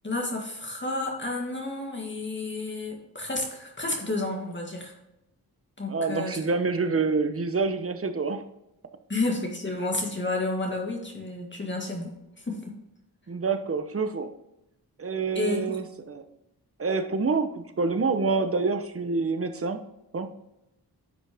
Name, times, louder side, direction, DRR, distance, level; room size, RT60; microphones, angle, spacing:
voice 1, 0.0-4.9 5.8-6.4 6.8-6.9 9.1-12.1 12.4-12.6 15.3-15.8, left 2 dB, 30° left, 0 dB, 1.9 m, -31 dB
voice 2, 5.9-8.4 13.3-14.3 15.0-16.2 16.8-19.8 20.1-20.3, right 4 dB, 35° right, 8 dB, 1.0 m, -27 dB
10.0 x 5.9 x 3.6 m, 0.87 s
cardioid pair, 70°, 38 cm